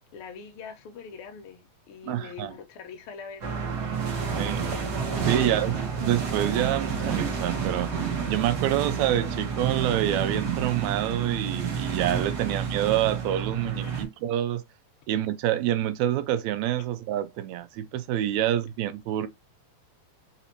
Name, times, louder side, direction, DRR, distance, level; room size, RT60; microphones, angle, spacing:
voice 1, 0.1-3.7 5.4-5.7 12.3-12.5 13.8-14.1 16.8-16.9, left 6 dB, 75° left, 1.3 m, -43 dB
voice 2, 2.0-2.5 4.4-4.7 5.3-7.9 8.3-14.6 15.1-19.3, right 12 dB, 80° right, 1.9 m, -27 dB
sound 1, 3.4-14.0, right 6 dB, 50° right, 1.3 m, -29 dB
4.2 x 4.0 x 2.9 m
omnidirectional pair, 3.3 m